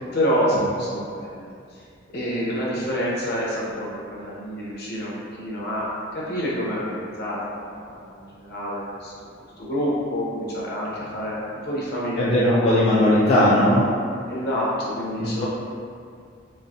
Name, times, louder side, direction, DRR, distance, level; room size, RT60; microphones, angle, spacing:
voice 1, 0.0-1.8 2.1-9.3 9.6-11.4 11.6-13.0 14.3-15.5, equal, 55° left, -6 dB, 0.7 m, -27 dB
voice 2, 12.2-14.0 15.2-15.5, left 1 dB, 35° left, -8 dB, 0.3 m, -18 dB
3.2 x 2.4 x 2.5 m, 2.3 s
head